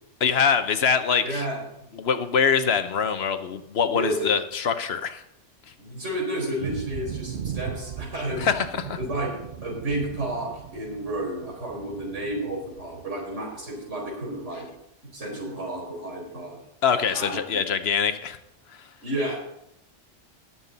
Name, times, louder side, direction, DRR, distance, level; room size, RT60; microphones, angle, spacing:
voice 1, 0.2-1.4 2.0-5.2 8.4-9.0 16.8-18.4, left 6 dB, 65° left, 10 dB, 1.0 m, -24 dB
voice 2, 1.2-1.6 3.9-4.3 5.8-8.5 9.0-14.7 15.1-16.6 17.1-17.4 19.0-19.4, right 1 dB, 90° right, -2 dB, 4.9 m, -31 dB
sound 1, 6.6-14.8, right 8 dB, 60° right, 0.8 m, -38 dB
19.0 x 7.4 x 4.0 m, 0.80 s
omnidirectional pair, 1.2 m